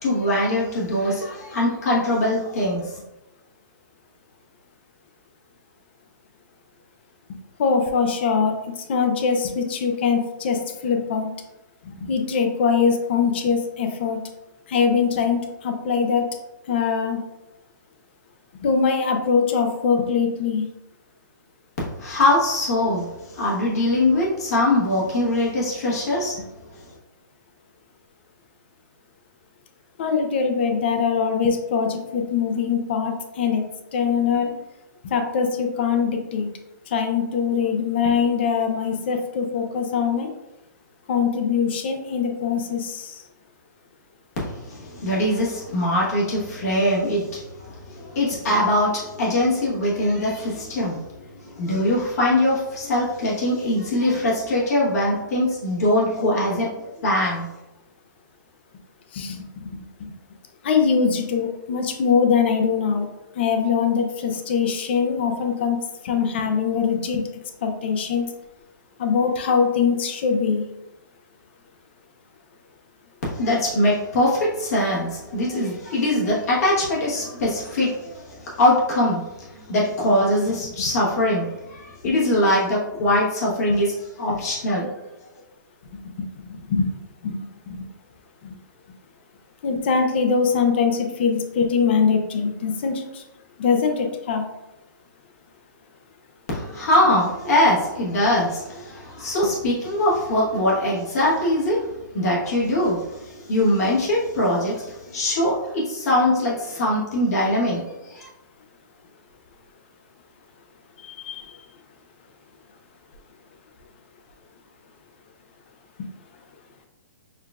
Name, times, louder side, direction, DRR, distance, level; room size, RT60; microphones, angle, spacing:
voice 1, 0.0-2.9 22.0-26.4 44.4-51.0 51.5-56.7 57.0-57.5 73.3-79.2 79.5-84.9 96.5-101.8 102.1-108.3, left 1 dB, 50° left, -6 dB, 1.1 m, -22 dB
voice 2, 7.6-11.3 11.8-14.2 14.7-16.3 16.7-17.2 18.6-20.6 30.0-33.6 33.9-34.5 35.0-36.5 36.9-40.3 41.1-43.2 51.7-51.8 59.1-60.1 60.6-63.1 63.3-65.8 66.0-67.2 67.6-68.3 69.0-70.7 80.7-80.9 82.0-82.1 84.3-84.4 85.9-87.9 88.4-88.5 89.6-93.2 93.6-94.4 111.0-111.7 116.0-116.1, left 6 dB, 35° left, 4 dB, 0.4 m, -23 dB
6.4 x 2.4 x 2.3 m, 0.99 s
hypercardioid pair, 175°, 11 cm